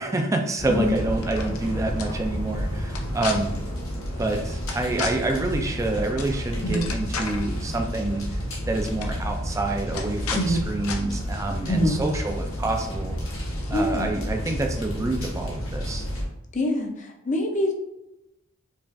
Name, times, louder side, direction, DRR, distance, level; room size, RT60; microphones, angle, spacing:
voice 1, 0.0-3.6 4.2-8.3 8.7-13.2 13.7-16.1, right 2 dB, 15° right, 3 dB, 0.3 m, -27 dB
sound 1, 0.6-16.2, equal, 70° left, 1.1 m, -31 dB
sound 2, 1.1-1.6 2.0-2.1 2.9-3.3 4.7-5.1 6.2-6.3 6.6-7.4 8.4-8.5 8.8-9.1 9.9-10.4 10.8-11.0, left 5 dB, 85° left, 0.6 m, -32 dB
voice 2, 11.7-12.0 13.6-14.1 16.5-17.7, left 1 dB, 35° left, 2 dB, 0.5 m, -24 dB
5.2 x 2.4 x 2.5 m, 0.91 s
head